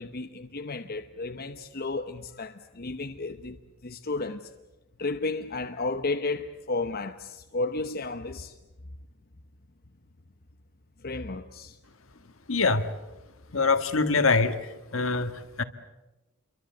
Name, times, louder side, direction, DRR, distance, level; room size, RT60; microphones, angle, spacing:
voice 1, 0.0-3.6 3.8-4.5 5.0-8.6 11.0-11.8, left 3 dB, 45° left, 0.9 m, -33 dB
voice 2, 12.5-12.9 13.5-15.6, left 4 dB, 65° left, 1.6 m, -24 dB
28.5 x 23.5 x 8.1 m
head